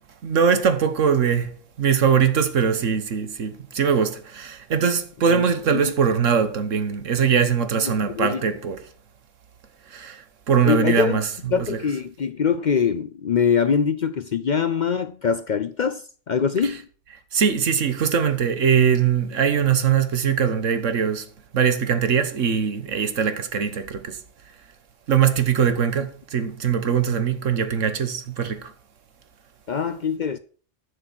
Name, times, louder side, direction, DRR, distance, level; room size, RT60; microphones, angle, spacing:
voice 1, 0.2-8.9 9.9-11.8 16.6-16.8 17.3-24.2 25.1-28.7, right 7 dB, 85° right, 1.5 m, -22 dB
voice 2, 7.9-8.4 10.6-11.2 11.5-16.9 29.7-30.4, left 6 dB, 55° left, 0.5 m, -23 dB
11.5 x 6.5 x 6.0 m
omnidirectional pair, 1.3 m